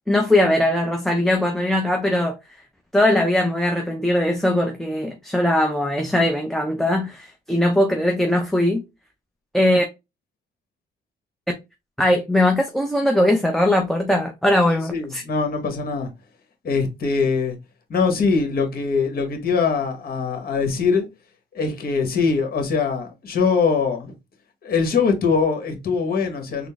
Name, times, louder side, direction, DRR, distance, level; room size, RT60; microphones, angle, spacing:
voice 1, 0.1-2.4 2.9-8.8 9.5-9.8 12.0-15.2, left 1 dB, ahead, 0.6 m, -20 dB
voice 2, 14.9-16.1 16.6-17.6 17.9-21.1 21.5-24.1 24.6-26.7, left 5 dB, 50° left, 1.2 m, -22 dB
3.8 x 2.0 x 3.5 m
cardioid pair, 90°, 20 cm